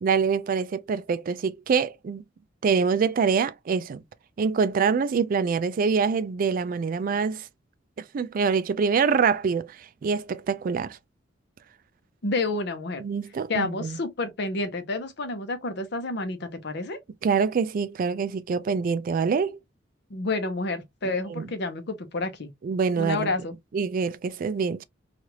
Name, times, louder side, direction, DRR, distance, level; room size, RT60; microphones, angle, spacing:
voice 1, 0.0-2.2 2.6-4.0 4.4-7.5 8.1-11.0 13.0-14.0 17.2-19.6 21.4-21.5 22.6-23.3 23.7-24.8, right 5 dB, 50° right, 0.3 m, -25 dB
voice 2, 12.2-13.0 13.5-17.0 20.1-22.5 23.0-23.5, left 2 dB, 65° left, 0.7 m, -29 dB
3.2 x 2.4 x 2.8 m
head